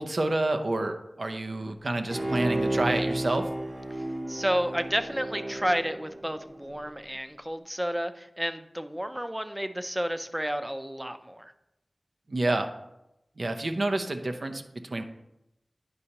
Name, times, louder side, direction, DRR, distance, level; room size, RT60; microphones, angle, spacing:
voice 1, 0.0-3.5 12.3-12.7 13.4-14.6 14.9-15.0, right 2 dB, 70° right, 7 dB, 0.6 m, -28 dB
Bowed string instrument, 2.1-6.7 7.1-7.2, right 1 dB, 50° right, 1.8 m, -32 dB
voice 2, 4.0-11.5, equal, 10° right, 9 dB, 0.5 m, -31 dB
9.6 x 5.4 x 2.9 m, 0.89 s
wide cardioid pair, 65°, 0 cm